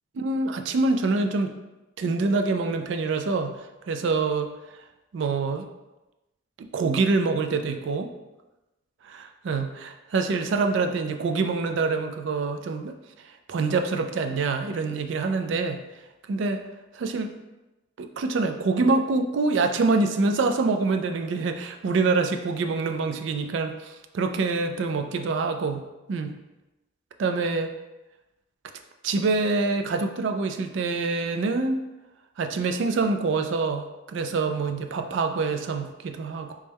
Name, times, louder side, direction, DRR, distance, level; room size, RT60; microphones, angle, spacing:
voice 1, 0.2-1.5 2.0-4.5 5.1-5.7 6.6-8.1 9.0-13.0 13.2-15.8 16.3-16.6 16.9-17.3 18.0-26.4 27.2-27.7 29.0-31.8 32.4-36.6, right 3 dB, 65° right, 6 dB, 0.3 m, -26 dB
3.2 x 3.1 x 3.4 m, 1.0 s
head